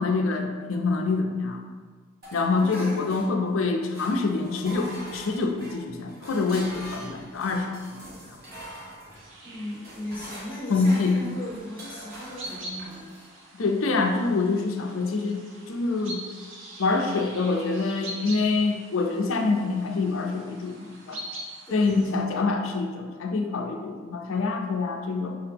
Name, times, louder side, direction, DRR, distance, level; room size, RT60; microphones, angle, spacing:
voice 1, 0.0-1.6 2.3-8.4 10.7-11.2 13.5-16.2 16.8-21.2 21.7-25.4, left 3 dB, 80° left, 3 dB, 0.5 m, -26 dB
sound 1, 2.2-3.6 3.9-13.3, equal, 45° right, 1.1 m, -44 dB
voice 2, 2.6-3.1 9.4-13.2 21.7-22.1, equal, 10° left, -7 dB, 0.8 m, -37 dB
sound 2, 9.1-22.2, right 1 dB, 65° right, 0.8 m, -43 dB
5.2 x 2.8 x 3.5 m, 1.5 s
head